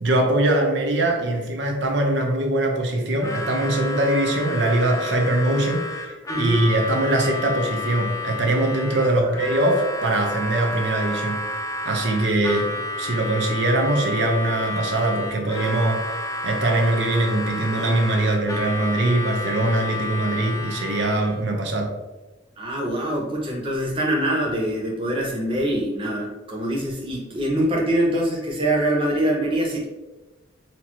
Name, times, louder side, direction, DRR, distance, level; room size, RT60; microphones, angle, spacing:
voice 1, 0.0-11.4 11.9-12.7 13.0-21.9, right 1 dB, 60° right, 2 dB, 0.7 m, -22 dB
Harmonica, 3.2-21.4, left 2 dB, 15° left, 0.3 m, -31 dB
voice 2, 6.3-6.6 9.2-9.6 22.6-29.9, right 1 dB, 25° right, -3 dB, 0.9 m, -24 dB
4.4 x 2.9 x 2.9 m, 1.1 s
head